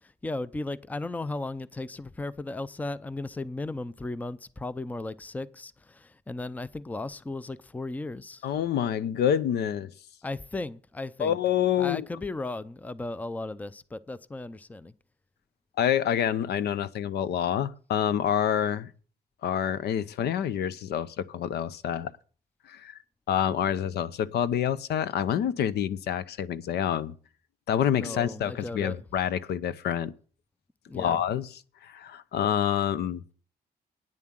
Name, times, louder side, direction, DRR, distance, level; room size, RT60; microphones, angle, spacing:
voice 1, 0.0-8.5 10.2-11.4 11.8-14.9 27.9-29.0 30.9-31.2, left 2 dB, 10° left, 0.5 m, -36 dB
voice 2, 8.4-9.9 11.2-12.0 15.8-18.9 19.4-22.1 22.7-23.0 23.3-27.1 27.7-30.1 30.9-33.2, left 9 dB, 80° left, 0.7 m, -27 dB
10.0 x 7.3 x 7.5 m
cardioid pair, 110°, 17 cm